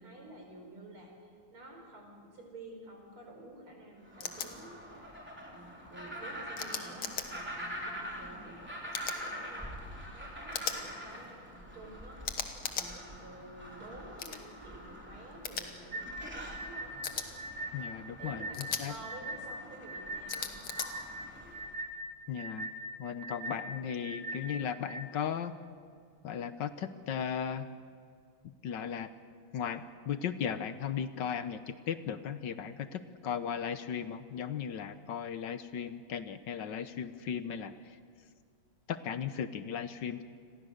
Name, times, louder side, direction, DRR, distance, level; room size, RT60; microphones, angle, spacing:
voice 1, 0.0-4.8 5.5-12.3 12.7-16.9 18.2-20.7, right 2 dB, 85° right, 2 dB, 5.6 m, -50 dB
sound 1, 4.0-21.8, equal, 5° right, 3.3 m, -45 dB
sound 2, 4.2-4.5 6.6-7.3 8.9-9.2 10.5-10.8 12.2-12.9 14.2-14.4 15.4-15.6 17.0-17.3 18.5-18.8 20.3-20.9, left 7 dB, 80° left, 2.3 m, -36 dB
sound 3, 15.9-25.1, right 1 dB, 40° right, 1.6 m, -41 dB
voice 2, 17.7-18.9 22.3-22.7 23.0-25.5 26.2-27.7 28.4-29.1 29.5-38.0 38.9-40.2, left 8 dB, 65° left, 11 dB, 1.4 m, -36 dB
29.5 x 22.0 x 6.6 m, 2.1 s
omnidirectional pair, 2.3 m